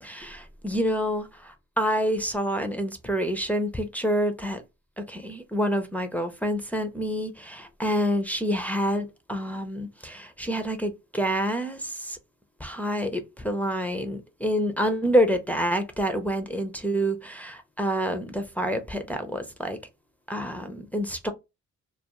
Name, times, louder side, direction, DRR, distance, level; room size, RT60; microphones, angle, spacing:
voice 1, 0.0-4.6 5.0-12.2 12.6-19.8 20.3-21.3, equal, 5° left, 0.4 m, -27 dB
2.3 x 2.2 x 2.8 m
cardioid pair, 90°, 30 cm